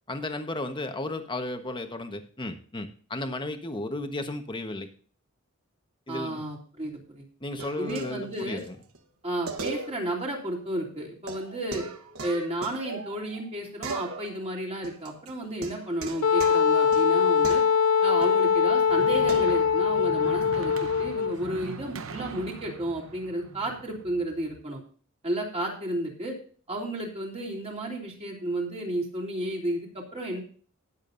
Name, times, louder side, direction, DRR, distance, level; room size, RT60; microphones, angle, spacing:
voice 1, 0.1-4.9 6.1-6.4 7.4-8.8, left 2 dB, 25° left, 7 dB, 1.2 m, -34 dB
voice 2, 6.1-7.2 7.8-8.6 9.2-11.9 12.2-17.6 18.0-24.8 25.2-26.4 26.7-30.4, right 1 dB, 30° right, -1 dB, 3.2 m, -32 dB
sound 1, 7.6-8.7 8.9-9.0 9.5-10.3 10.5-10.6 11.3-13.5 13.8-14.5 14.8-18.5 19.3-19.6, right 3 dB, 85° right, 1.2 m, -38 dB
Wind instrument woodwind instrument, 16.2-21.4, left 6 dB, 85° left, 0.6 m, -22 dB
sound 2, 18.5-24.6, right 4 dB, 70° right, 0.8 m, -42 dB
19.5 x 7.6 x 2.6 m, 0.43 s
head